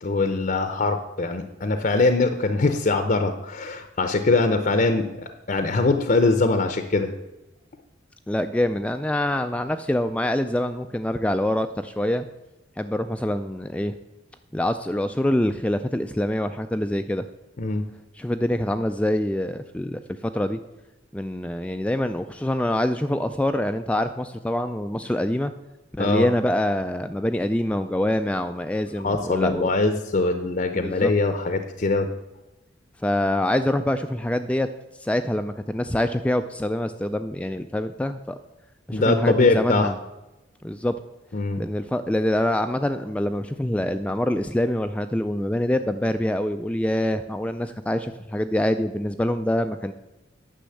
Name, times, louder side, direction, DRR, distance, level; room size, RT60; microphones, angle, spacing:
voice 1, 0.0-7.1 17.6-17.9 26.0-26.3 29.0-32.1 38.9-39.9 41.3-41.6, left 3 dB, 45° left, 8 dB, 0.7 m, -22 dB
voice 2, 8.3-12.2 12.8-14.0 14.5-17.3 18.1-20.6 21.1-25.5 26.0-29.7 30.7-31.1 33.0-34.7 35.0-38.4 38.9-39.9 40.6-40.9 41.6-49.9, left 1 dB, 5° left, 8 dB, 0.3 m, -25 dB
10.0 x 6.2 x 7.7 m, 1.0 s
head